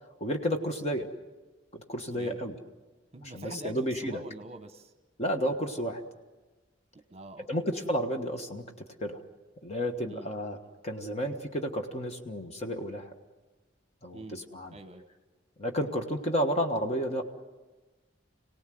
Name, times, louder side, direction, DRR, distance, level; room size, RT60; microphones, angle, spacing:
voice 1, 0.2-1.1 1.7-2.6 3.2-4.2 5.2-6.0 7.4-9.2 9.6-13.1 14.0-14.8 15.6-17.2, equal, 35° left, 4 dB, 1.4 m, -32 dB
voice 2, 3.1-4.9 6.9-7.7 10.1-10.3 14.1-14.5 14.7-15.1, right 2 dB, 30° right, 8 dB, 1.1 m, -45 dB
26.5 x 18.0 x 7.8 m, 1.2 s
head